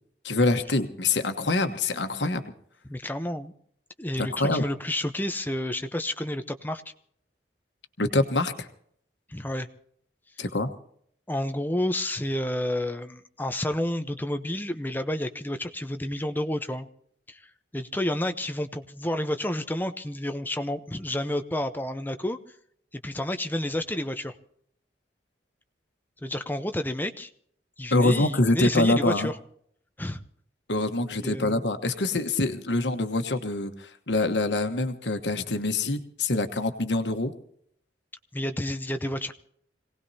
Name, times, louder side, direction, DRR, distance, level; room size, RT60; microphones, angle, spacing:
voice 1, 0.2-2.5 4.2-4.6 8.0-8.7 10.4-10.7 27.9-29.3 30.7-37.3, left 2 dB, 85° left, 7 dB, 1.2 m, -25 dB
voice 2, 2.8-3.5 4.0-6.8 9.3-9.7 11.3-16.9 17.3-17.4 17.7-22.4 22.9-24.3 26.2-27.3 27.8-29.3 30.0-30.2 31.2-31.6 38.3-39.3, left 1 dB, 10° left, 8 dB, 0.8 m, -30 dB
26.0 x 18.0 x 2.8 m, 0.66 s
head